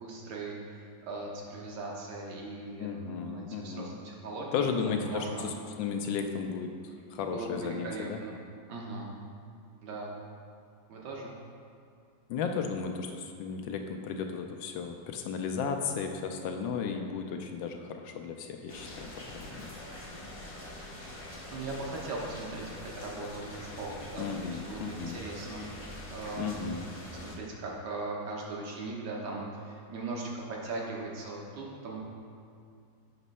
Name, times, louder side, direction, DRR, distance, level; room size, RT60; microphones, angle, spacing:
voice 1, 0.0-5.5 7.2-8.4 8.7-9.1 9.8-10.2 10.9-11.3 21.5-25.7 26.1-26.6 27.2-32.0, right 3 dB, 85° right, -2 dB, 1.8 m, -39 dB
voice 2, 2.8-4.0 4.5-6.7 7.1-8.2 12.3-19.1 19.3-19.7 24.2-25.2 26.4-26.9, left 6 dB, 80° left, 4 dB, 1.3 m, -34 dB
sound 1, 18.7-27.4, left 1 dB, 45° left, 0.4 m, -44 dB
7.5 x 3.0 x 5.4 m, 2.4 s
omnidirectional pair, 2.1 m